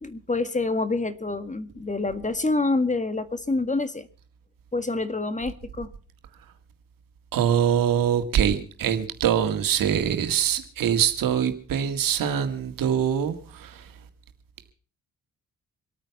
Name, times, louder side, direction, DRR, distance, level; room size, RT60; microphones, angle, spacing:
voice 1, 0.0-4.1 4.7-5.9, left 3 dB, 20° left, 12 dB, 1.6 m, -27 dB
voice 2, 7.3-13.8, right 9 dB, 85° right, 8 dB, 1.9 m, -24 dB
25.5 x 9.0 x 5.8 m, 0.41 s
cardioid pair, 60°, 33 cm